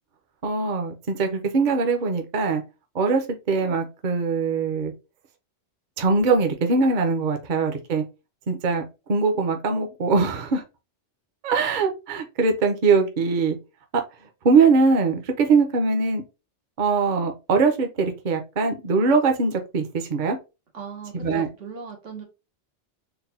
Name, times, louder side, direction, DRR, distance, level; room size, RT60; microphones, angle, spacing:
voice 1, 0.4-2.6 2.9-4.9 6.0-8.0 8.5-8.8 9.1-10.6 11.4-13.6 14.4-16.2 16.8-20.4 21.1-21.5, right 4 dB, 45° right, 0.8 m, -22 dB
voice 2, 20.7-22.2, right 5 dB, 80° right, 1.6 m, -38 dB
3.9 x 2.2 x 4.0 m
omnidirectional pair, 1.2 m